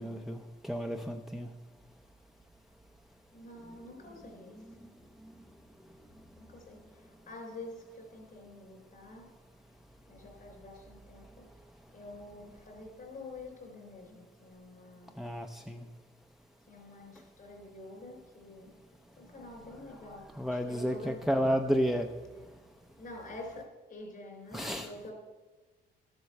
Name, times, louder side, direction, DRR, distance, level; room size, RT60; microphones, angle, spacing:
voice 1, 0.0-1.5 15.2-15.8 20.3-22.1 24.5-24.9, equal, ahead, 5 dB, 0.6 m, -31 dB
voice 2, 3.3-4.6 6.4-9.3 10.1-11.4 11.9-15.2 16.7-18.7 19.2-21.2 23.0-25.1, left 2 dB, 50° left, 1 dB, 4.2 m, -48 dB
13.0 x 7.9 x 6.6 m, 1.3 s
cardioid pair, 120°, 19 cm